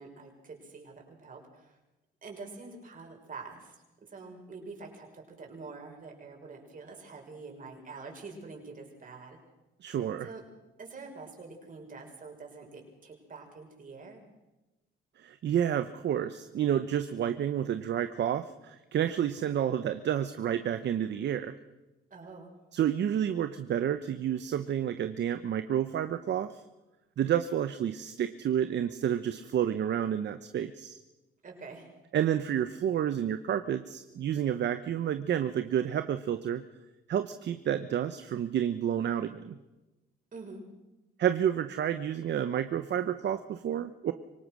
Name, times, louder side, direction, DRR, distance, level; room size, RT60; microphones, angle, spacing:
voice 1, 0.0-1.8 2.2-9.4 10.2-10.4 10.8-14.2 22.1-22.5 31.4-31.9 40.3-40.6, right 4 dB, 45° right, 1 dB, 6.2 m, -46 dB
voice 2, 9.8-10.3 15.2-21.6 22.7-26.6 27.2-31.0 32.1-36.6 37.1-39.5 41.2-44.1, right 9 dB, 60° right, 10 dB, 1.0 m, -30 dB
25.0 x 18.5 x 6.3 m, 1.1 s
cardioid pair, 90°, 20 cm